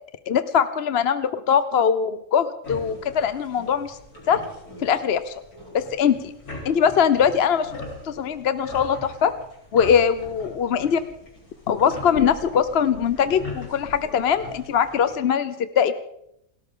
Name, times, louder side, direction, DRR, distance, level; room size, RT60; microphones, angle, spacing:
voice 1, 0.3-4.0 4.3-4.4 4.8-5.3 5.7-6.3 6.6-7.7 8.0-9.3 9.7-11.0 11.7-15.9, left 7 dB, 55° left, 12 dB, 0.8 m, -21 dB
sound 1, 2.6-15.1, left 1 dB, 80° left, 4.4 m, -40 dB
29.0 x 13.5 x 3.7 m, 0.77 s
omnidirectional pair, 1.5 m